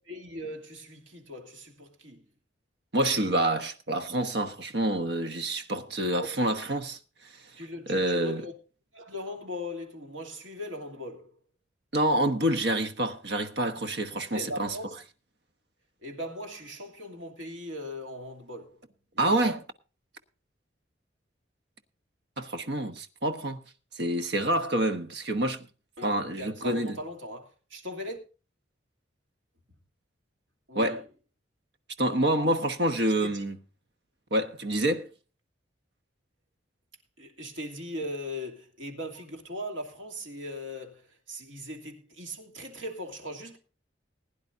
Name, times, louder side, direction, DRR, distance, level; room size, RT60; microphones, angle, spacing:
voice 1, 0.1-2.2 6.2-6.6 7.6-8.5 8.9-11.3 14.1-15.0 16.0-18.8 19.1-19.6 26.0-28.2 30.7-31.0 33.2-33.4 37.2-41.0 41.3-43.6, left 1 dB, 85° right, 2.7 m, -39 dB
voice 2, 2.9-7.0 7.9-8.4 11.9-14.8 19.2-19.6 22.4-23.6 23.9-25.6 26.0-27.0 30.7-31.0 32.0-33.6 34.3-35.1, right 1 dB, 60° right, 1.2 m, -27 dB
20.5 x 10.5 x 2.6 m
head